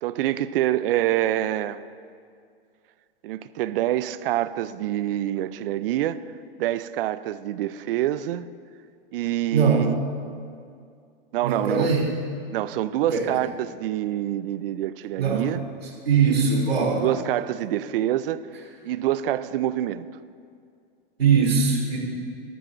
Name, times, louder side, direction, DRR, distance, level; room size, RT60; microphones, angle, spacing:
voice 1, 0.0-1.8 3.2-6.2 6.6-8.5 9.1-10.0 11.3-11.9 12.5-15.6 17.0-18.5 18.8-20.1, right 13 dB, 65° right, 14 dB, 0.6 m, -26 dB
voice 2, 9.5-9.8 11.4-12.0 13.1-13.2 15.2-15.5 16.0-17.0 21.2-22.0, right 5 dB, 90° right, -2 dB, 3.2 m, -21 dB
22.5 x 12.5 x 2.6 m, 2.3 s
hypercardioid pair, 105°, 30 cm